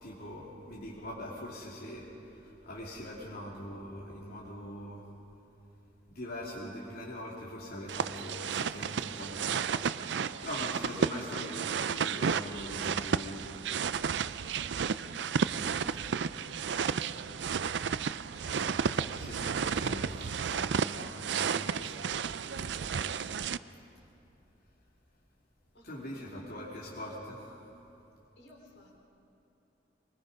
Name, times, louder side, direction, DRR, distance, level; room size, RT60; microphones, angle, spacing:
voice 1, 0.0-5.1 6.1-10.1 10.4-13.5 18.4-22.1 22.4-23.3 25.8-27.6, left 1 dB, 60° left, -6 dB, 2.8 m, -43 dB
sound 1, 7.9-23.6, right 6 dB, 75° right, 0.5 m, -32 dB
voice 2, 16.4-17.7 25.7-26.4 28.4-29.0, equal, 85° left, -1 dB, 4.3 m, -57 dB
23.5 x 22.0 x 5.3 m, 2.9 s
head